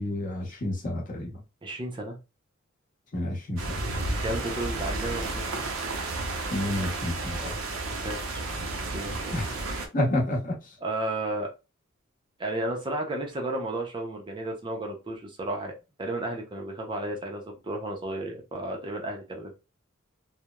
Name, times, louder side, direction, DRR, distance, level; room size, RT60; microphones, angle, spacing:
voice 1, 0.0-1.3 3.1-3.8 6.5-7.6 9.3-9.6 9.9-10.6, left 1 dB, 40° left, 0.8 m, -29 dB
voice 2, 1.6-2.2 4.2-5.6 7.9-8.4 8.9-9.5 10.8-11.5 12.4-15.7 16.0-19.6, right 1 dB, 25° right, 0.5 m, -33 dB
sound 1, 3.6-9.9, right 2 dB, 75° right, 0.6 m, -32 dB
2.9 x 2.0 x 2.2 m
head